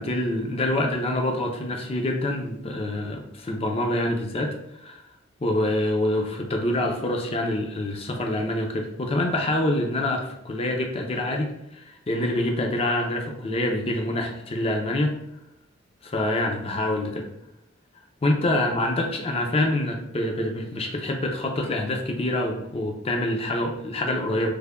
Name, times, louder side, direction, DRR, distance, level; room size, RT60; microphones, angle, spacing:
voice 1, 0.0-5.0 5.4-15.1 16.0-17.3 18.2-24.5, left 1 dB, 30° left, 2 dB, 0.5 m, -26 dB
3.3 x 2.1 x 3.5 m, 0.82 s
head